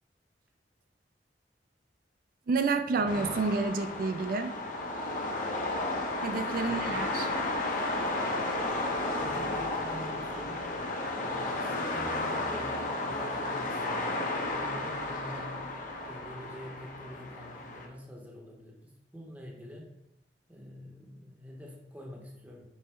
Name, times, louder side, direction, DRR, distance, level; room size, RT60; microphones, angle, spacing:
voice 1, 2.5-4.5 6.2-7.3, right 4 dB, 55° right, 9 dB, 0.3 m, -29 dB
sound 1, 3.1-17.9, left 2 dB, 50° left, 0.6 m, -33 dB
voice 2, 6.6-7.1 9.1-10.7 11.0-15.6 16.0-19.9 20.5-22.6, equal, 10° right, -1 dB, 0.7 m, -46 dB
5.4 x 2.1 x 4.3 m, 0.83 s
head